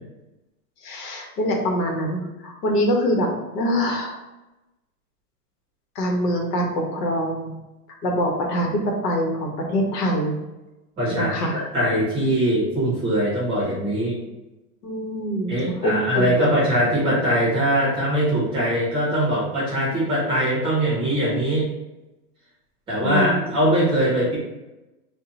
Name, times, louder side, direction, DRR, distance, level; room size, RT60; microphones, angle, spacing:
voice 1, 0.8-3.3 3.5-4.2 5.9-7.6 8.0-10.3 11.1-11.6 14.8-16.5 23.0-23.5, equal, 75° left, 1 dB, 1.1 m, -24 dB
voice 2, 11.0-14.2 15.5-21.6 22.9-24.4, equal, 10° right, -7 dB, 0.7 m, -22 dB
3.6 x 2.2 x 3.9 m, 1.0 s
supercardioid pair, 165°, 48 cm